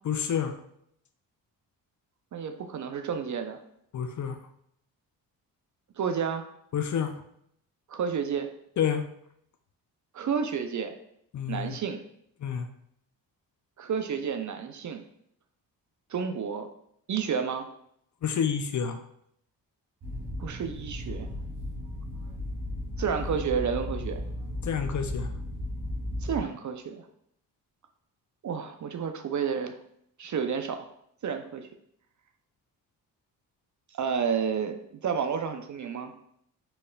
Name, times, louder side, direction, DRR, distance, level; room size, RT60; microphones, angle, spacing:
voice 1, 0.0-0.5 3.9-4.4 6.7-7.2 8.8-9.0 11.3-11.8 12.4-12.7 18.2-19.0 24.6-25.3, left 7 dB, 40° left, 7 dB, 0.5 m, -29 dB
voice 2, 2.3-3.6 6.0-6.5 7.9-8.5 10.1-10.9 11.5-12.0 13.8-15.0 16.1-16.7 17.1-17.7 20.4-21.3 23.0-24.2 26.2-27.1 28.4-29.8 30.2-30.9 31.2-31.7 33.9-36.1, right 6 dB, 40° right, 7 dB, 0.5 m, -30 dB
sound 1, 20.0-26.4, left 1 dB, 60° right, 1.0 m, -35 dB
4.1 x 3.2 x 2.3 m, 0.70 s
supercardioid pair, 50°, 45 cm